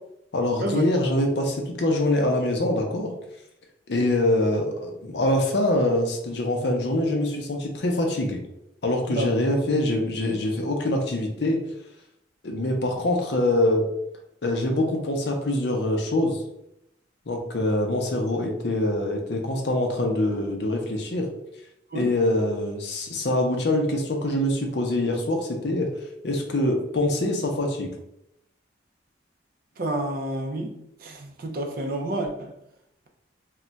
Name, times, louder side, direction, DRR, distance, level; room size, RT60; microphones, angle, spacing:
voice 1, 0.3-3.1 3.9-8.4 8.8-11.6 12.4-13.9 14.4-16.4 17.3-21.3 21.9-25.9 26.2-27.9, left 1 dB, 55° left, 0.5 m, -24 dB
voice 2, 29.8-32.5, right 1 dB, 50° right, 0.4 m, -29 dB
2.3 x 2.1 x 3.9 m
head